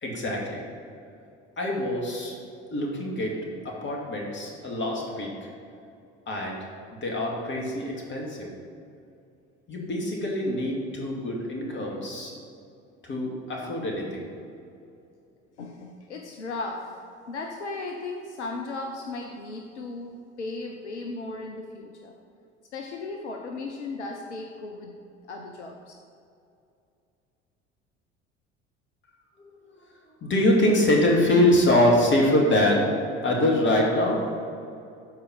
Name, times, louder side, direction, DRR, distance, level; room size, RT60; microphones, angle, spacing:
voice 1, 0.0-0.6 1.6-2.3 2.7-3.4 3.6-5.5 6.3-6.6 6.9-8.5 9.7-12.3 13.0-14.3 30.2-32.9 33.2-34.4, left 1 dB, 35° left, -1 dB, 2.3 m, -24 dB
voice 2, 15.6-17.0 17.3-22.1 22.7-25.0 25.3-25.9, left 3 dB, 80° left, 3 dB, 0.7 m, -36 dB
12.5 x 4.9 x 5.4 m, 2.6 s
figure-of-eight pair, 60°, 34 cm